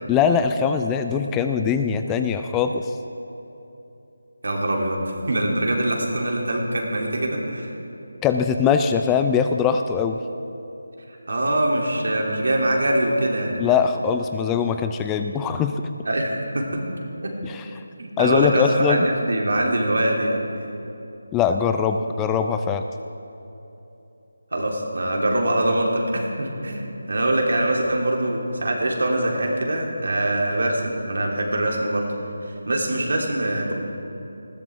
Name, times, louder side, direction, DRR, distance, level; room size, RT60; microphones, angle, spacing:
voice 1, 0.1-2.9 8.2-10.2 13.6-15.7 17.4-17.7 18.2-19.1 21.3-22.8, left 7 dB, 10° left, 7 dB, 0.3 m, -21 dB
voice 2, 4.4-7.7 11.3-13.6 16.0-16.8 17.2-17.3 18.0-20.4 24.5-32.0 32.4-33.7, right 1 dB, 70° right, -1 dB, 3.0 m, -23 dB
19.5 x 15.5 x 3.6 m, 2.9 s
figure-of-eight pair, 165°, 0 cm